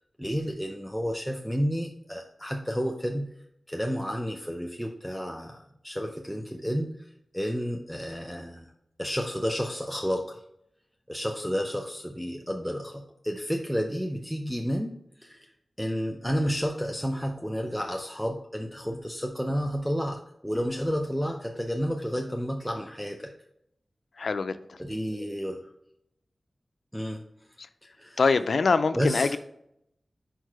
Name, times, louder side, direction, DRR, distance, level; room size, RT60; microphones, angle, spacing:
voice 1, 0.2-3.3 3.7-7.1 7.3-8.7 9.0-10.4 11.1-15.5 15.8-23.3 24.8-25.7 26.9-27.2 28.0-28.2 28.9-29.4, equal, ahead, 2 dB, 0.5 m, -31 dB
voice 2, 24.2-24.8 27.6-27.7 28.2-29.4, left 4 dB, 80° left, 11 dB, 0.3 m, -24 dB
4.9 x 4.6 x 4.5 m, 0.77 s
wide cardioid pair, 70°, 0 cm